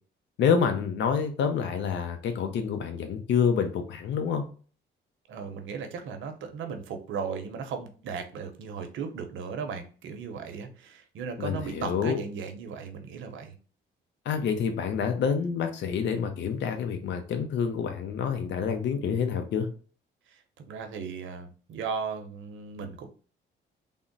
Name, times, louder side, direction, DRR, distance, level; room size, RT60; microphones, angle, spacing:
voice 1, 0.4-4.4 11.4-12.2 14.3-19.7, left 6 dB, 65° left, 6 dB, 0.6 m, -27 dB
voice 2, 5.3-13.6 20.3-20.4 20.6-23.1, right 5 dB, 75° right, 6 dB, 0.7 m, -36 dB
3.5 x 2.0 x 3.9 m, 0.39 s
cardioid pair, 90°, 20 cm